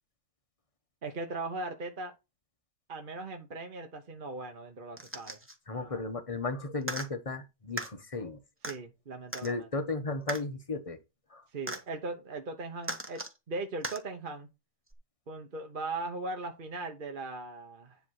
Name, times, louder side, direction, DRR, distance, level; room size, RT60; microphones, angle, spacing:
voice 1, 1.0-2.1 2.9-5.4 5.7-6.0 8.7-9.7 11.5-13.2 13.5-14.5 15.3-18.0, right 3 dB, 35° right, 0.9 m, -39 dB
sound 1, 5.0-5.6 6.8-7.1 7.8-7.9 8.6-8.7 9.3-9.5 10.3-10.4 11.7-11.8 12.8-13.4 13.8-14.0 14.9-15.0, right 1 dB, 10° right, 0.8 m, -37 dB
voice 2, 5.7-8.4 9.4-11.0 11.3-11.4, left 3 dB, 25° left, 0.8 m, -35 dB
10.0 x 3.5 x 6.4 m
omnidirectional pair, 1.9 m